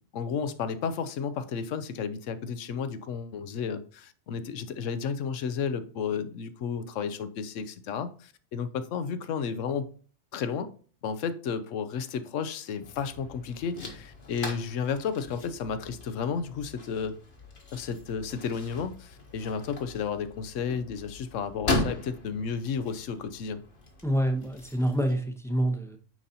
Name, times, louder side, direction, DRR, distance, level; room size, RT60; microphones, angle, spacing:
voice 1, 0.1-9.9 10.3-10.7 11.0-17.2 17.7-23.6, left 6 dB, 75° left, 1.0 m, -32 dB
sound 1, 12.8-25.1, left 2 dB, 45° left, 1.4 m, -38 dB
voice 2, 24.0-26.0, right 1 dB, 5° left, 0.7 m, -27 dB
9.2 x 4.0 x 2.8 m
omnidirectional pair, 1.3 m